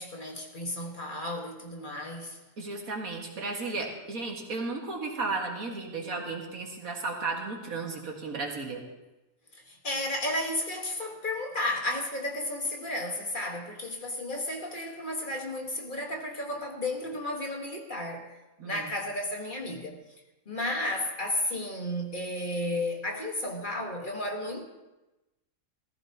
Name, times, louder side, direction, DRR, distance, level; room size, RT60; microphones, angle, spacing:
voice 1, 0.0-2.4 9.7-18.3 18.6-20.0 20.4-24.6, left 1 dB, 35° left, 1 dB, 1.7 m, -33 dB
voice 2, 2.6-8.8 18.6-18.9, right 3 dB, 85° right, 0 dB, 2.2 m, -34 dB
17.5 x 14.5 x 2.9 m, 1.0 s
omnidirectional pair, 1.4 m